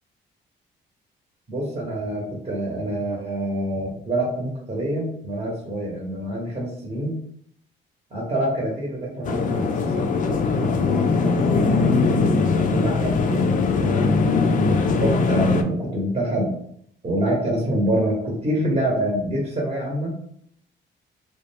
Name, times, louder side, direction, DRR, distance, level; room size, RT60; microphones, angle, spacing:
voice 1, 1.5-7.2 8.1-10.1 10.4-12.2 12.7-16.5 17.0-20.1, right 1 dB, 30° right, -3 dB, 0.9 m, -27 dB
sound 1, 9.2-15.6, left 4 dB, 40° left, 0.4 m, -20 dB
2.4 x 2.2 x 3.2 m, 0.68 s
cardioid pair, 90°, 20 cm